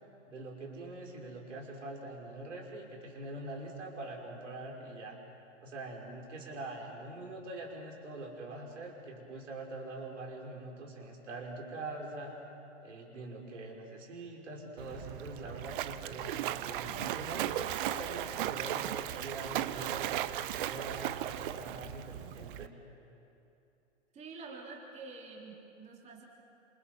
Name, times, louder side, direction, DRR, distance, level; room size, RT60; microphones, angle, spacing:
voice 1, 0.3-5.2 5.6-12.4 12.8-20.0 20.5-22.7, right 2 dB, 75° right, -1 dB, 6.2 m, -43 dB
Splash splatter, 14.8-22.7, right 12 dB, 45° right, 0.9 m, -36 dB
voice 2, 24.1-26.2, right 4 dB, 20° right, -2 dB, 3.9 m, -47 dB
28.5 x 27.5 x 6.3 m, 2.8 s
hypercardioid pair, 125°, 37 cm